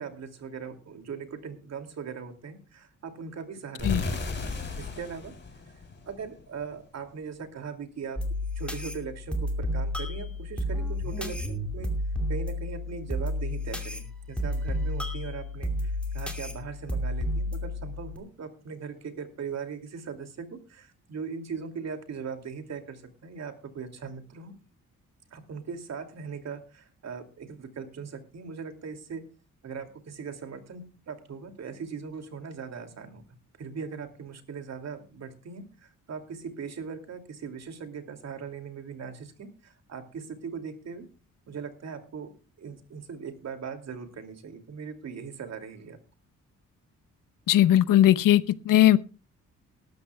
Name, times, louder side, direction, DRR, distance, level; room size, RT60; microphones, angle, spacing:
voice 1, 0.0-4.5 4.8-5.3 6.1-8.2 8.6-11.9 12.3-24.5 25.3-29.2 29.6-33.2 33.6-41.1 41.5-42.3 42.6-46.0, right 6 dB, 55° right, 2.6 m, -39 dB
sound 1, 3.8-6.6, left 3 dB, 35° left, 3.3 m, -34 dB
sound 2, 8.2-18.2, left 1 dB, 5° left, 2.5 m, -31 dB
voice 2, 47.5-49.0, left 12 dB, 85° left, 0.8 m, -19 dB
19.0 x 13.0 x 2.3 m
cardioid pair, 110°, 32 cm